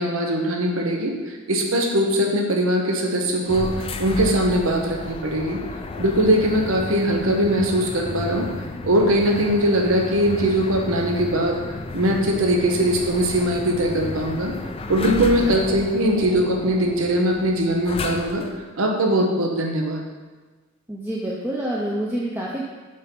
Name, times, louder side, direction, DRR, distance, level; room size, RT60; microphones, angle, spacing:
voice 1, 0.0-5.6 6.0-8.5 8.8-11.6 11.9-14.5 14.9-18.4 18.8-20.0, right 1 dB, 80° right, 2 dB, 1.0 m, -21 dB
sound 1, 3.4-18.6, left 3 dB, 25° left, 0.4 m, -33 dB
voice 2, 15.2-15.5 20.9-22.6, right 1 dB, 10° right, -5 dB, 0.6 m, -28 dB
6.6 x 4.3 x 5.3 m, 1.3 s
head